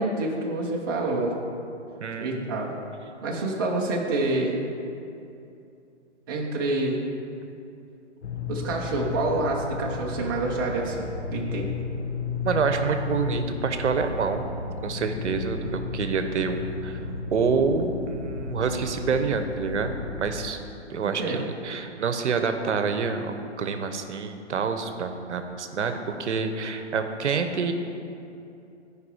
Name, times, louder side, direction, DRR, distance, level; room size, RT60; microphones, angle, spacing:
voice 1, 0.0-1.4 2.2-2.7 3.2-4.6 6.3-7.0 8.5-11.7 21.0-21.5, right 2 dB, 20° right, -3 dB, 0.5 m, -27 dB
voice 2, 2.0-2.6 12.4-14.5 14.8-17.0 17.3-20.6 20.9-27.7, right 5 dB, 75° right, 7 dB, 0.8 m, -27 dB
sound 1, 8.2-20.5, left 4 dB, 65° left, 0.8 m, -33 dB
9.6 x 4.9 x 4.8 m, 2.7 s
hypercardioid pair, 155°, 36 cm